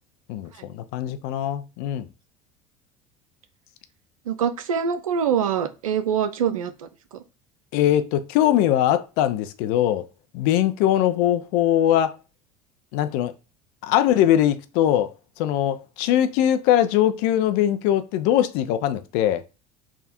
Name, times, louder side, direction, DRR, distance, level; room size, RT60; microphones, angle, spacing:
voice 1, 0.3-2.1 7.7-10.1 10.3-12.1 12.9-13.3 13.8-19.4, left 11 dB, 60° left, 0.5 m, -21 dB
voice 2, 4.3-7.2, right 7 dB, 85° right, 0.4 m, -25 dB
3.5 x 2.3 x 4.2 m
hypercardioid pair, 70°, 17 cm